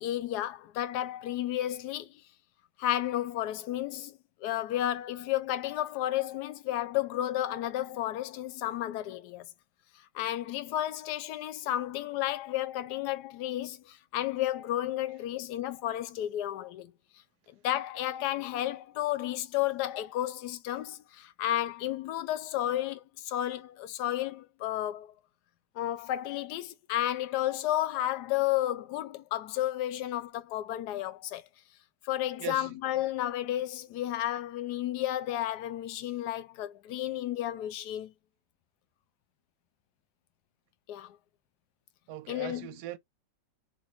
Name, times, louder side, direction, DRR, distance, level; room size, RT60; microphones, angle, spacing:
voice 1, 0.0-2.2 2.8-9.4 10.1-16.9 17.5-25.1 25.8-31.5 32.0-38.1 40.9-41.2 42.3-42.7, left 13 dB, 75° left, 1.1 m, -32 dB
voice 2, 32.4-32.8 42.1-43.0, right 14 dB, 70° right, 1.1 m, -40 dB
3.9 x 2.6 x 3.0 m
omnidirectional pair, 2.0 m